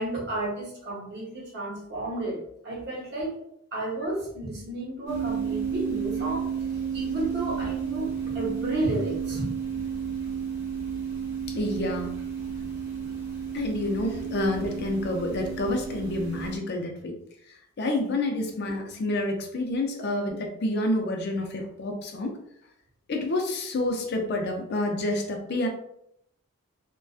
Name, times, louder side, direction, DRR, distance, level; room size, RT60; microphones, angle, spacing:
voice 1, 0.0-2.4 2.6-3.4 3.7-6.4 6.9-9.5, right 1 dB, 50° right, -3 dB, 0.8 m, -32 dB
sound 1, 5.1-16.6, right 7 dB, 30° right, 1.2 m, -32 dB
voice 2, 11.5-12.1 13.5-17.2 17.5-22.4 23.1-25.7, left 1 dB, 50° left, 3 dB, 0.4 m, -28 dB
2.5 x 2.2 x 2.3 m, 0.73 s
head